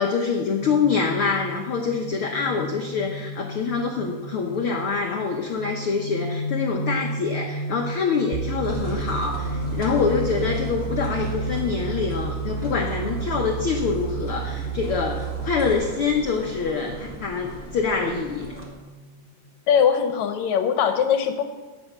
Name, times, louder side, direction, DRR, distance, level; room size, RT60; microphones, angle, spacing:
voice 1, 0.0-18.5, left 5 dB, 90° left, 2 dB, 1.2 m, -25 dB
sound 1, 0.6-19.8, left 1 dB, 40° left, 1.7 m, -35 dB
sound 2, 8.3-15.8, right 13 dB, 85° right, 2.2 m, -32 dB
sound 3, 8.6-18.7, equal, 30° right, 1.5 m, -38 dB
voice 2, 19.7-21.4, left 7 dB, 70° left, 7 dB, 1.9 m, -21 dB
10.5 x 8.9 x 6.7 m, 1.3 s
omnidirectional pair, 3.8 m